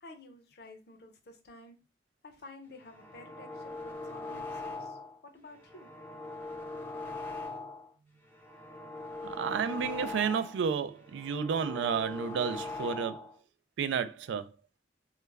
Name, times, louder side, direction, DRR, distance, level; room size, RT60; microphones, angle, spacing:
voice 1, 0.0-1.8 2.2-5.0 5.2-5.9, left 2 dB, 60° left, 0.6 m, -52 dB
sound 1, 2.8-5.2 5.5-7.9 8.3-10.6 11.0-13.3, left 3 dB, 15° left, 0.4 m, -41 dB
voice 2, 9.2-13.3 13.8-14.5, right 6 dB, 90° right, 0.3 m, -32 dB
2.3 x 2.1 x 3.2 m
head